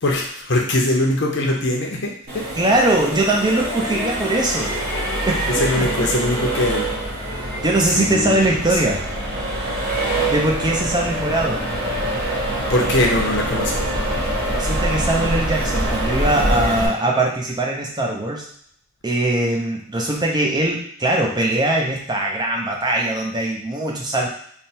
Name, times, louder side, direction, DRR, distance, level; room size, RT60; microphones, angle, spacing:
voice 1, 0.0-2.5 5.5-6.9 7.9-8.6 12.7-13.9, left 1 dB, 55° left, 0 dB, 0.8 m, -21 dB
Accelerating revving vroom, 2.3-16.9, right 1 dB, 45° right, 1.2 m, -24 dB
voice 2, 2.6-4.8 5.2-5.5 5.8-5.9 7.6-9.0 10.3-11.6 14.5-18.5 19.0-24.3, right 1 dB, 20° right, 0 dB, 0.5 m, -21 dB
3.4 x 2.2 x 4.2 m, 0.66 s
head